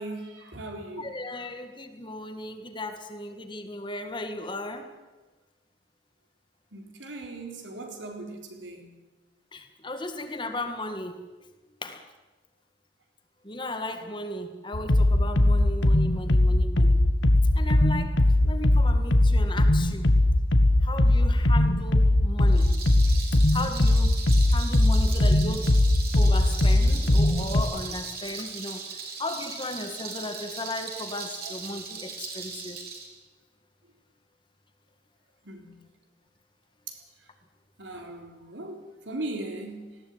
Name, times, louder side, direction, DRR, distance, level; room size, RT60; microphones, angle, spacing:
voice 1, 0.0-1.5 6.7-9.0 35.4-35.8 36.9-37.0 37.8-40.0, right 2 dB, 80° right, 3 dB, 3.9 m, -39 dB
voice 2, 1.0-4.9 9.5-11.2 11.8-12.0 13.4-17.0 17.6-20.1 20.8-22.7 23.5-24.2 24.5-25.7 26.2-32.8, left 1 dB, 25° left, 7 dB, 1.9 m, -36 dB
sound 1, 14.7-27.6, left 1 dB, 80° left, 1.5 m, -20 dB
Rattle, 22.4-33.1, right 5 dB, 55° right, 4.6 m, -39 dB
19.5 x 16.0 x 9.4 m, 1.2 s
head